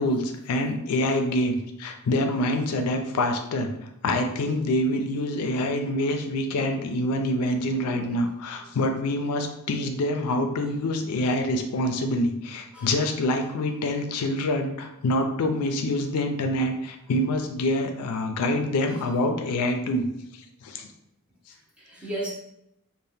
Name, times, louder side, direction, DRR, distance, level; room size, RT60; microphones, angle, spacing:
voice 1, 0.0-3.7 4.0-20.1 20.6-20.9, left 1 dB, 85° left, 5 dB, 0.4 m, -26 dB
voice 2, 7.6-8.3 12.7-12.9 18.9-19.0 21.5-22.3, right 1 dB, 5° right, -5 dB, 0.7 m, -37 dB
2.7 x 2.1 x 3.4 m, 0.83 s
head